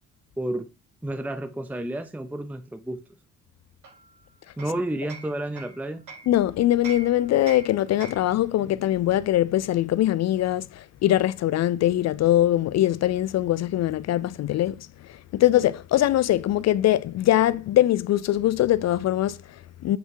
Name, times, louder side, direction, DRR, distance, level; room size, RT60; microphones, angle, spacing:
voice 1, 1.0-3.0 4.6-6.0, right 1 dB, 5° right, 0.6 m, -31 dB
Hammer, 3.8-6.4 6.8-8.4, right 4 dB, 80° right, 3.5 m, -43 dB
voice 2, 6.3-20.0, left 13 dB, 60° left, 0.5 m, -22 dB
8.2 x 3.4 x 4.7 m
cardioid pair, 90°, 30 cm